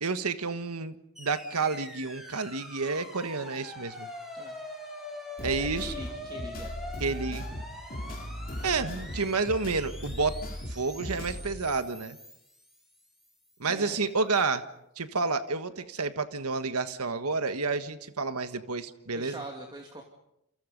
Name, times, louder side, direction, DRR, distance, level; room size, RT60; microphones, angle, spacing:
voice 1, 0.0-4.1 5.4-5.9 7.0-7.4 8.6-10.4 10.7-12.2 13.6-14.6 15.0-19.4, right 4 dB, 90° right, 10 dB, 1.5 m, -30 dB
sound 1, 1.1-13.4, left 2 dB, ahead, 6.9 m, -44 dB
sound 2, 5.4-11.6, equal, 40° left, 3.9 m, -38 dB
voice 2, 5.6-6.7 13.6-14.0 19.1-20.0, right 1 dB, 20° right, 2 dB, 2.5 m, -43 dB
29.0 x 29.0 x 5.4 m, 0.82 s
head